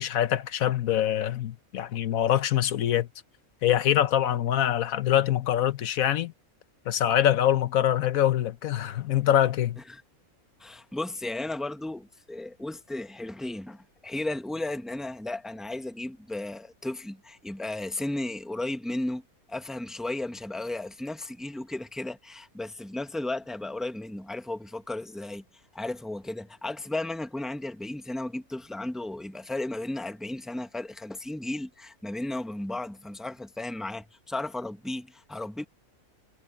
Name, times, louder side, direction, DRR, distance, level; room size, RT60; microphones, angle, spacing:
voice 1, 0.0-3.1 3.6-6.3 6.9-9.8, left 11 dB, 80° left, 1.2 m, -24 dB
voice 2, 10.6-19.2 19.5-25.4 25.7-35.7, left 2 dB, ahead, 1.1 m, -34 dB
omnidirectional pair, 1.4 m